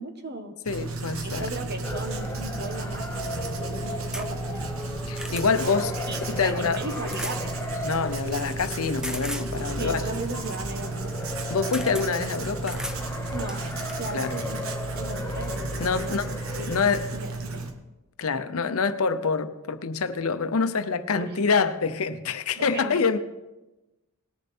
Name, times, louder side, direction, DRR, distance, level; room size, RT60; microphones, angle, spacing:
voice 1, 0.0-0.5 1.2-4.7 6.1-7.5 9.8-11.1 13.3-13.6 14.0-14.6 14.9-16.1 16.5-16.8 17.1-17.6 21.1-21.4 22.6-23.2, right 1 dB, 50° right, 1.3 m, -36 dB
voice 2, 0.7-1.5 5.1-5.9 6.3-6.8 7.8-10.0 11.5-12.8 14.1-14.3 15.8-16.4 16.7-17.1 18.2-23.2, left 5 dB, 75° left, 0.7 m, -26 dB
Writing, 0.7-17.7, right 3 dB, 70° right, 1.2 m, -33 dB
sound 1, 1.8-16.8, left 2 dB, 15° left, 1.0 m, -37 dB
sound 2, 4.1-4.3 4.8-5.5 7.1-7.4 9.0-9.5 11.2-11.4 11.7-12.1 12.7-13.0 13.5-14.0 15.1-15.2 15.5-15.6, equal, 5° right, 0.6 m, -36 dB
19.0 x 6.9 x 4.3 m
head